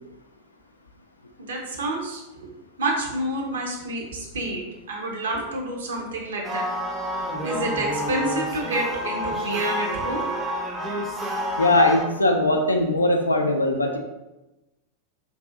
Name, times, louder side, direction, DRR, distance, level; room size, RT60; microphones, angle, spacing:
voice 1, 1.4-2.5 2.8-6.7 7.4-10.2, right 1 dB, 65° right, 0 dB, 0.6 m, -28 dB
sound 1, 6.4-12.0, equal, 10° right, 0.4 m, -29 dB
voice 2, 11.6-14.0, left 2 dB, 80° left, 4 dB, 0.3 m, -20 dB
2.6 x 2.4 x 2.4 m, 1.0 s
figure-of-eight pair, 90°, 0 cm